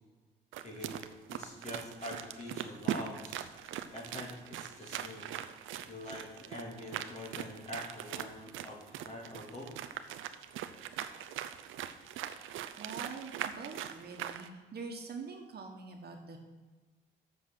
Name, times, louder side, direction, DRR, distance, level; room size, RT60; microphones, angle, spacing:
sound 1, 0.5-14.5, right 11 dB, 85° right, 0.6 m, -41 dB
voice 1, 0.6-1.0 1.3-3.5 3.9-5.3 5.9-9.7, left 1 dB, 35° left, -2 dB, 2.8 m, -45 dB
voice 2, 12.8-16.4, right 4 dB, 55° right, 3 dB, 1.5 m, -45 dB
7.6 x 6.3 x 6.5 m, 1.3 s
cardioid pair, 90°, 20 cm